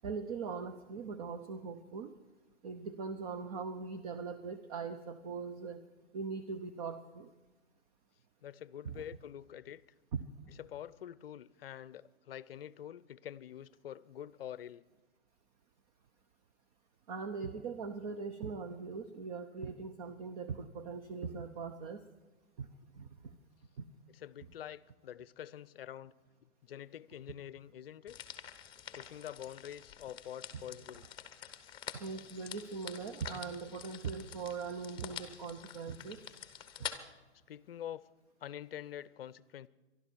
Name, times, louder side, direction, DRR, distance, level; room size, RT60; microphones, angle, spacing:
voice 1, 0.0-2.1 2.6-5.8 6.1-7.3 8.8-9.0 10.1-10.2 17.1-22.0 22.6-22.7 23.0-23.1 32.0-36.2, right 5 dB, 35° right, 0.7 m, -41 dB
voice 2, 8.4-9.8 10.5-14.8 24.1-26.1 26.6-28.2 28.9-31.0 35.1-35.3 36.8-37.2 37.5-38.1 38.4-39.7, left 10 dB, 55° left, 0.6 m, -46 dB
sound 1, 28.1-37.0, left 9 dB, 15° left, 1.0 m, -47 dB
23.0 x 12.0 x 4.6 m
hypercardioid pair, 135°, 35 cm